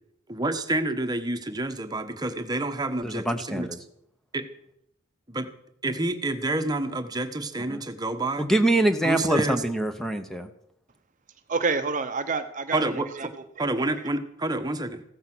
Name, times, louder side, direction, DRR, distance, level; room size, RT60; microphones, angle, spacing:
voice 1, 0.3-3.7 4.3-4.5 5.3-5.5 5.8-8.5 9.0-9.6 12.7-13.1 13.6-15.0, right 2 dB, 20° right, 8 dB, 1.1 m, -28 dB
voice 2, 3.0-3.8 7.7-7.8 8.4-10.5, right 1 dB, ahead, 7 dB, 0.9 m, -24 dB
voice 3, 11.5-13.3 13.6-14.0, right 4 dB, 35° right, 9 dB, 0.8 m, -29 dB
15.5 x 13.5 x 6.1 m, 0.76 s
head